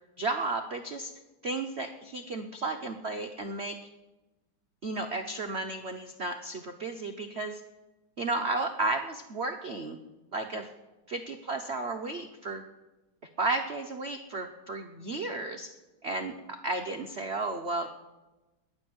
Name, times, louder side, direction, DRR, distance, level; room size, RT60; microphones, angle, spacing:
voice 1, 0.2-1.1 1.4-3.8 4.8-7.6 8.2-10.0 10.3-10.7 11.1-12.6 13.4-15.7 16.0-18.0, right 2 dB, 50° right, 4 dB, 0.7 m, -33 dB
21.0 x 7.1 x 9.4 m, 1.1 s
omnidirectional pair, 2.3 m